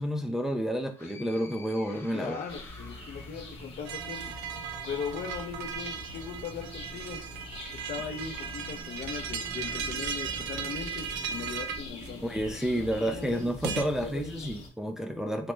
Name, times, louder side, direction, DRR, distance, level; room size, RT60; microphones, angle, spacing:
voice 1, 0.0-2.4 12.2-15.5, equal, 5° right, 0.3 m, -30 dB
sound 1, 0.9-4.6, left 3 dB, 15° left, 0.8 m, -51 dB
voice 2, 2.1-4.4 4.9-7.3 7.7-12.3 13.0-13.5 14.0-14.5, left 6 dB, 55° left, 0.5 m, -39 dB
sound 2, 2.5-14.7, left 2 dB, 35° left, 1.0 m, -44 dB
sound 3, 3.9-13.9, right 7 dB, 75° right, 0.5 m, -37 dB
3.1 x 2.1 x 3.1 m
cardioid pair, 110°, 17 cm